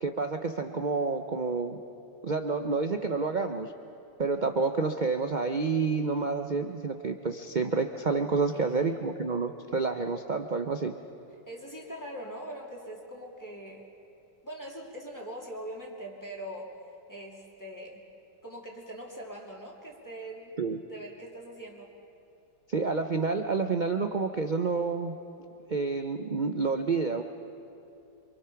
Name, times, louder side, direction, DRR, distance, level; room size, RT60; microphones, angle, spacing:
voice 1, 0.0-1.8 2.2-3.7 4.2-11.0 20.6-20.8 22.7-25.2 25.7-27.2, right 4 dB, 85° right, 6 dB, 0.4 m, -29 dB
voice 2, 8.5-8.8 11.5-13.9 14.4-16.7 17.1-18.0 18.4-21.9, right 1 dB, 10° left, -2 dB, 2.8 m, -42 dB
28.0 x 24.5 x 5.8 m, 2.7 s
omnidirectional pair, 2.0 m